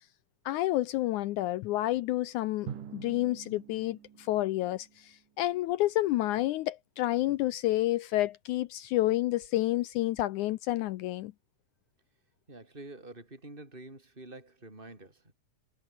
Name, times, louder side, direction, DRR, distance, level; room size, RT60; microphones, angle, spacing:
voice 1, 0.5-11.3, left 16 dB, 75° left, 2.0 m, -29 dB
Drum, 2.7-5.3, right 8 dB, 75° right, 3.9 m, -46 dB
voice 2, 12.5-15.3, right 2 dB, 15° right, 6.2 m, -48 dB
omnidirectional pair, 3.8 m